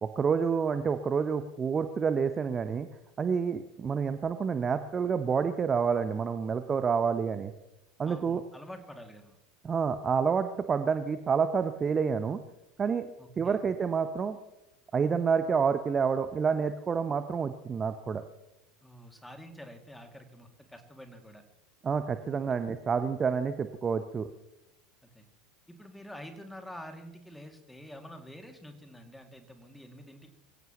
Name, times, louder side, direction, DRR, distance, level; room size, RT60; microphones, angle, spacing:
voice 1, 0.0-2.9 3.2-7.5 8.0-8.4 9.6-12.4 12.8-13.1 13.4-14.4 14.9-18.2 21.8-24.3, right 6 dB, 25° right, 10 dB, 0.8 m, -28 dB
voice 2, 8.1-9.4 13.2-13.7 18.8-21.4 25.0-25.3 25.7-30.4, equal, 5° left, 5 dB, 2.3 m, -47 dB
24.5 x 16.5 x 3.0 m, 0.90 s
figure-of-eight pair, 80°, 0 cm